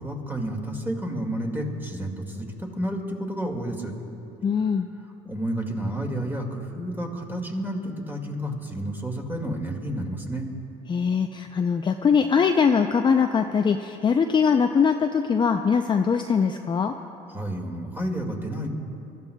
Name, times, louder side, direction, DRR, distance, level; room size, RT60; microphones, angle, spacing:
voice 1, 0.0-3.9 5.3-10.5 17.3-18.8, right 1 dB, 10° right, 2 dB, 2.0 m, -30 dB
voice 2, 4.4-4.9 10.9-16.9, left 6 dB, 25° left, 5 dB, 0.5 m, -22 dB
25.0 x 13.5 x 2.3 m, 2.9 s
supercardioid pair, 90°, 18 cm